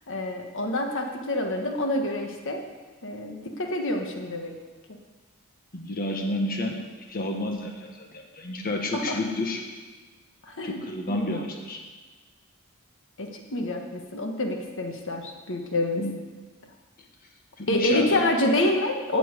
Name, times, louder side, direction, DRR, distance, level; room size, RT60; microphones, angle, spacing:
voice 1, 0.1-2.6 3.0-4.5 8.9-9.2 10.5-10.8 11.1-11.4 13.2-16.0 17.7-19.2, left 1 dB, 60° left, 3 dB, 1.5 m, -27 dB
voice 2, 5.7-6.8 7.1-9.6 10.6-11.8 16.0-16.1 17.6-18.2, left 1 dB, 45° left, 2 dB, 1.5 m, -30 dB
17.0 x 6.0 x 8.3 m, 1.4 s
head